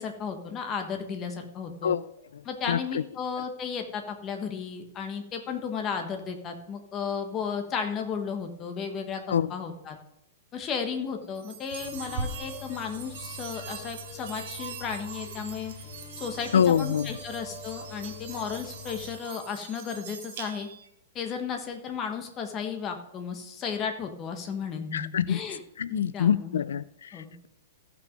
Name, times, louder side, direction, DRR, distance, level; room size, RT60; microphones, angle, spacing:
voice 1, 0.0-1.9 2.4-10.0 10.5-15.7 16.2-20.7 21.1-25.6 25.9-26.7 27.1-27.5, left 6 dB, 20° left, 1.3 m, -34 dB
voice 2, 2.3-3.0 9.3-9.5 16.5-17.2 24.9-27.5, left 8 dB, 90° left, 0.3 m, -26 dB
sound 1, 11.4-20.9, right 5 dB, 50° right, 1.5 m, -41 dB
sound 2, 11.8-19.2, left 5 dB, 50° left, 4.2 m, -45 dB
14.5 x 6.0 x 5.2 m
hypercardioid pair, 165°, 0 cm